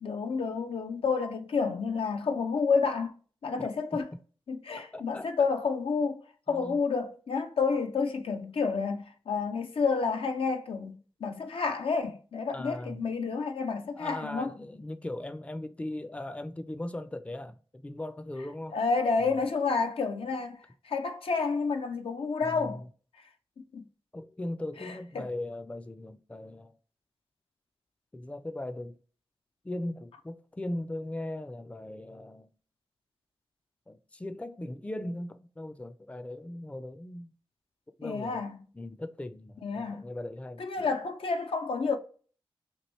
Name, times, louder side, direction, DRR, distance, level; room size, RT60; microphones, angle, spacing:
voice 1, 0.0-3.1 3.4-4.1 4.5-6.2 6.5-14.5 18.7-22.8 23.7-23.8 24.8-25.3 38.0-38.6 39.6-40.0 40.6-42.0, left 4 dB, 75° left, 0.4 m, -30 dB
voice 2, 4.9-5.5 6.5-6.8 12.5-13.0 14.0-18.8 19.2-19.4 22.4-22.9 24.1-26.8 28.1-29.0 29.6-32.5 33.9-37.3 38.0-38.4 38.7-40.9, left 1 dB, 15° left, 0.4 m, -39 dB
3.0 x 2.6 x 3.0 m
cardioid pair, 40°, 10 cm